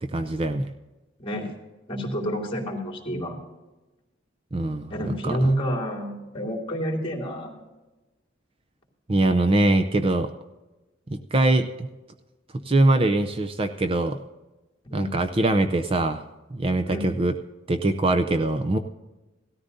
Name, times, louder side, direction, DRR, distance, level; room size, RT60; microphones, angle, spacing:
voice 1, 0.1-0.7 4.5-5.4 9.1-10.3 11.1-11.9 12.6-14.2 14.9-16.2 16.5-17.3 17.7-18.8, right 2 dB, 30° right, 8 dB, 0.6 m, -22 dB
voice 2, 1.9-3.4 4.9-7.5 14.8-15.1 16.8-17.1, equal, 30° left, 0 dB, 2.9 m, -28 dB
17.5 x 13.5 x 2.7 m, 1.1 s
head